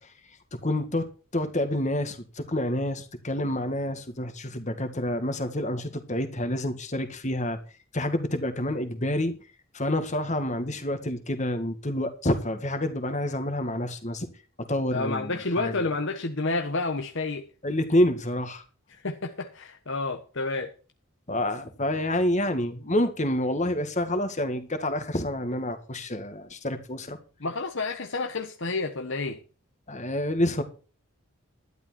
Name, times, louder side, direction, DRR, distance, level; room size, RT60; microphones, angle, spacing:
voice 1, 0.5-1.1 1.3-7.6 7.9-9.3 9.7-14.3 14.6-15.8 17.6-18.6 21.3-27.2 29.9-30.6, left 1 dB, 35° left, 2.0 m, -28 dB
voice 2, 14.9-17.4 19.0-20.7 27.4-29.4, left 3 dB, 55° left, 1.2 m, -30 dB
12.0 x 11.5 x 4.5 m
head